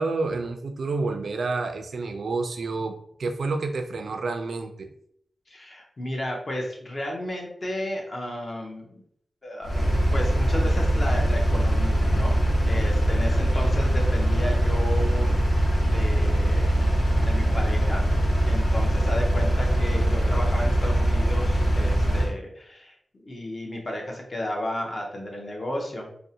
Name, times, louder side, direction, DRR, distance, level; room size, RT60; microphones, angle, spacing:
voice 1, 0.0-4.9, right 3 dB, 70° right, 6 dB, 0.3 m, -29 dB
voice 2, 5.5-9.0 9.4-15.4 15.7-18.0 18.4-23.0 23.2-26.1, left 1 dB, 35° left, 0 dB, 0.5 m, -33 dB
Engine, 9.6-22.3, equal, 60° left, 1.0 m, -22 dB
2.6 x 2.0 x 2.7 m, 0.68 s
wide cardioid pair, 145°, 0 cm